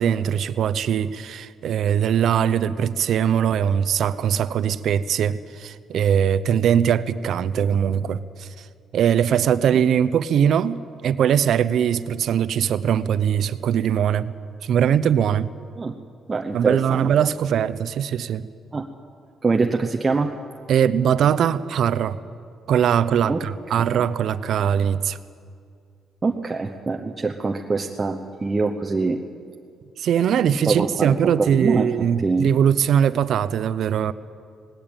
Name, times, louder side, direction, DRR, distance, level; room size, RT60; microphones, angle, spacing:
voice 1, 0.0-8.5 8.9-14.3 14.6-15.5 16.5-18.5 20.7-22.2 22.7-25.2 30.0-34.1, right 8 dB, 65° right, 15 dB, 0.7 m, -21 dB
voice 2, 16.3-17.1 18.7-18.8 19.4-20.3 23.3-23.4 26.2-29.2 30.7-32.5, right 4 dB, 25° right, 3 dB, 0.9 m, -24 dB
19.0 x 17.0 x 8.9 m, 2.3 s
cardioid pair, 120°, 0 cm